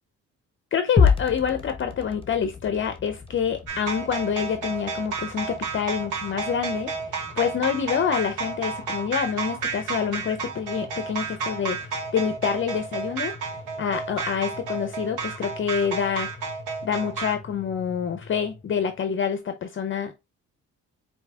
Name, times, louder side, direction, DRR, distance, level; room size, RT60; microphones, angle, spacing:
voice 1, 0.7-11.8 12.1-16.3 16.8-20.1, left 7 dB, 40° left, 0.6 m, -27 dB
sound 1, 1.0-19.2, left 6 dB, 20° left, 0.9 m, -33 dB
sound 2, 3.7-17.3, right 5 dB, 85° right, 1.4 m, -31 dB
4.6 x 2.8 x 3.4 m
cardioid pair, 90°, 30 cm